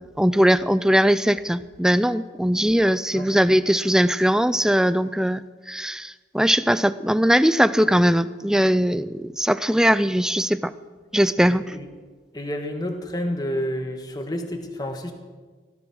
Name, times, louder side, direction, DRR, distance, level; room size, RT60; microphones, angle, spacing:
voice 1, 0.2-5.4 5.7-10.7 11.1-11.6, equal, 5° right, 15 dB, 0.4 m, -20 dB
voice 2, 11.5-11.9 12.3-15.1, equal, 20° left, 4 dB, 1.6 m, -29 dB
17.0 x 13.5 x 6.3 m, 1.4 s
head